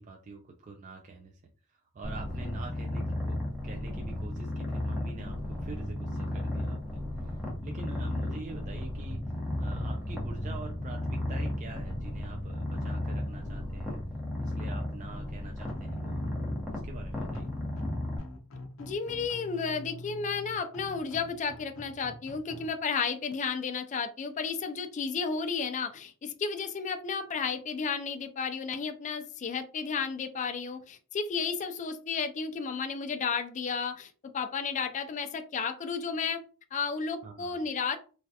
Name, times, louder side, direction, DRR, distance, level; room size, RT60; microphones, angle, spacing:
voice 1, 0.0-1.4 1.7-3.4 3.6-14.0 14.4-16.2 16.7-17.5 37.2-37.7, right 3 dB, 35° right, 2 dB, 0.4 m, -46 dB
Purr, 2.0-18.2, left 1 dB, 5° right, 0.8 m, -34 dB
sound 1, 15.7-22.7, left 1 dB, 65° left, 0.7 m, -46 dB
voice 2, 18.8-36.4 36.7-38.0, left 5 dB, 35° left, 7 dB, 0.3 m, -33 dB
3.2 x 2.3 x 2.7 m, 0.37 s
head